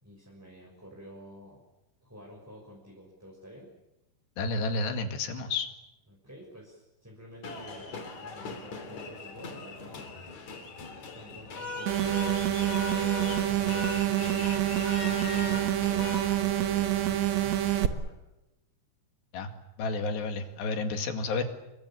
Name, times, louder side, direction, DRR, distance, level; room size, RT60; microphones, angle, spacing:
voice 1, 0.0-1.6 2.0-3.7 6.1-10.1 11.1-14.7 15.2-15.6 16.3-18.2, equal, 5° right, -1 dB, 5.8 m, -49 dB
voice 2, 4.4-5.7 19.3-19.5 19.8-21.4, left 3 dB, 70° left, 5 dB, 4.2 m, -31 dB
sound 1, 7.4-16.3, left 3 dB, 45° left, 4.0 m, -39 dB
sound 2, 11.9-17.9, right 13 dB, 75° right, 1.6 m, -27 dB
30.0 x 23.5 x 7.5 m, 0.95 s
omnidirectional pair, 5.2 m